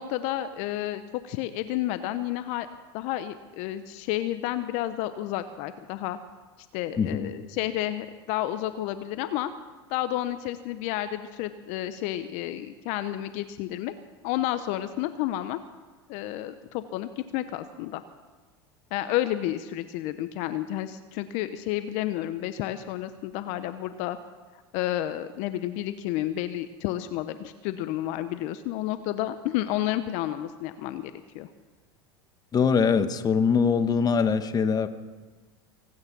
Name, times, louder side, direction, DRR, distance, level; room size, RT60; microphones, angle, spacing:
voice 1, 0.0-2.7 2.9-6.2 6.7-9.5 9.9-13.9 14.2-15.6 16.1-18.0 18.9-24.2 24.7-31.5, left 13 dB, 60° left, 11 dB, 0.8 m, -31 dB
voice 2, 7.0-7.3 32.5-34.9, left 6 dB, 30° left, 10 dB, 1.2 m, -23 dB
24.0 x 9.6 x 6.1 m, 1.3 s
hypercardioid pair, 95°, 14 cm